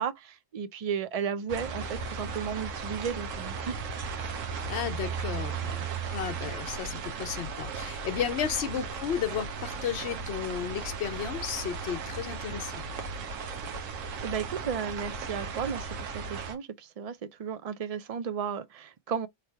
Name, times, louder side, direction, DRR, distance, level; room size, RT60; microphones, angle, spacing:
voice 1, 0.0-4.3 13.8-14.0 14.2-19.3, right 7 dB, 55° right, 0.4 m, -34 dB
sound 1, 1.5-16.6, right 5 dB, 90° right, 1.2 m, -36 dB
voice 2, 4.7-5.8 6.1-12.8, left 9 dB, 60° left, 1.0 m, -33 dB
3.3 x 2.9 x 4.5 m
omnidirectional pair, 1.3 m